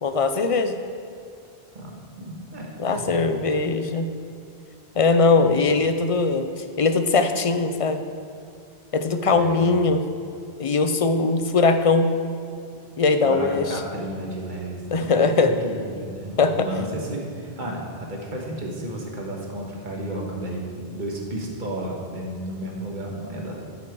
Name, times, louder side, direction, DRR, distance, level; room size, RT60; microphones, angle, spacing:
voice 1, 0.0-0.8 2.8-4.1 5.0-8.0 8.9-10.0 10.6-12.1 13.0-13.6 14.9-15.5 16.4-16.7, left 4 dB, 45° left, 8 dB, 0.5 m, -20 dB
voice 2, 1.7-3.2 5.3-5.6 9.3-9.7 13.2-23.6, right 1 dB, 50° right, -1 dB, 1.6 m, -32 dB
13.0 x 6.0 x 4.6 m, 2.5 s
omnidirectional pair, 1.1 m